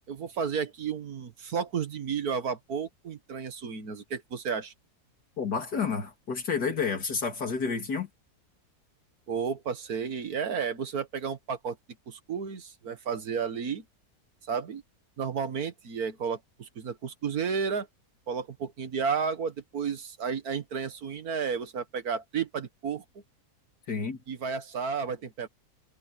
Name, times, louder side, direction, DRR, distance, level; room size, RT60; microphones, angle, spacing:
voice 1, 0.0-4.7 9.3-11.8 12.1-13.8 14.5-14.8 15.2-17.9 18.3-23.0 24.3-25.5, right 6 dB, 65° right, 2.0 m, -32 dB
voice 2, 5.4-8.1 23.9-24.2, left 5 dB, 80° left, 3.3 m, -30 dB
omnidirectional pair, 1.7 m